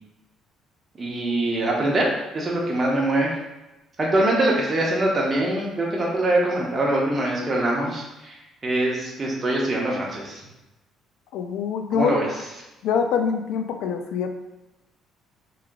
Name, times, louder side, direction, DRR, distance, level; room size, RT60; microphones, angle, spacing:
voice 1, 1.0-2.0 2.3-3.3 4.0-8.3 8.6-10.4 11.9-12.3, right 1 dB, 25° right, -2 dB, 0.9 m, -23 dB
voice 2, 11.3-12.2 12.8-14.3, left 6 dB, 80° left, 6 dB, 0.4 m, -24 dB
3.1 x 2.9 x 3.6 m, 1.0 s
cardioid pair, 120°, 0 cm